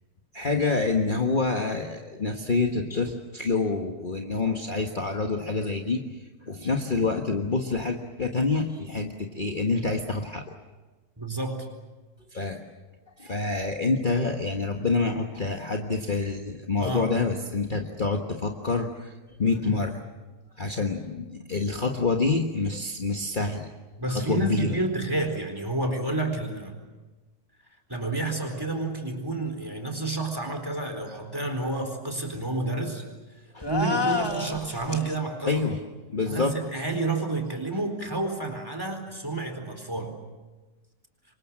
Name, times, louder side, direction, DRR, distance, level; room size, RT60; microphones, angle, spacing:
voice 1, 0.3-10.4 12.3-12.6 13.2-19.1 19.4-20.1 20.6-23.7 24.1-24.8 33.5-33.7 34.1-34.2 35.4-35.8 36.1-36.6, left 3 dB, 30° left, 2 dB, 1.6 m, -27 dB
voice 2, 11.2-11.7 14.8-14.9 16.8-17.1 19.7-19.8 24.0-26.7 27.9-33.0 33.7-35.6 36.3-40.2, right 2 dB, 15° right, 4 dB, 4.2 m, -30 dB
sound 1, 33.6-35.2, left 3 dB, 15° left, 1.8 m, -29 dB
28.0 x 24.5 x 7.5 m, 1.2 s
omnidirectional pair, 1.7 m